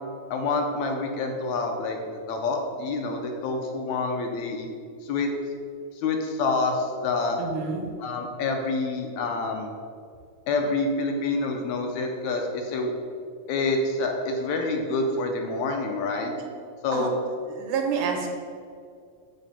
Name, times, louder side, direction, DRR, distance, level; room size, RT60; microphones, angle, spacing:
voice 1, 0.3-2.0 2.3-4.7 5.0-5.3 6.0-7.4 8.0-9.7 10.5-12.9 13.5-16.3 16.8-17.1, left 3 dB, 75° left, 3 dB, 1.8 m, -27 dB
voice 2, 7.4-7.9 16.3-16.4 16.9-17.1 17.5-18.3, right 5 dB, 85° right, 3 dB, 2.3 m, -28 dB
7.2 x 3.3 x 5.6 m, 2.2 s
omnidirectional pair, 3.5 m